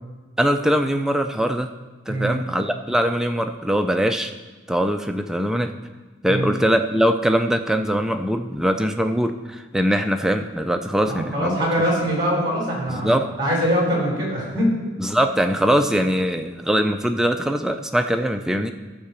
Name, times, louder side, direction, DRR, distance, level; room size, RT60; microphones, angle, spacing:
voice 1, 0.4-1.7 2.1-4.3 4.7-5.7 6.2-11.7 12.9-13.3 15.0-18.7, equal, 5° right, 6 dB, 0.4 m, -22 dB
voice 2, 2.1-2.4 6.3-6.5 11.0-14.8, equal, 20° right, -3 dB, 3.4 m, -23 dB
13.5 x 4.8 x 6.8 m, 1.3 s
head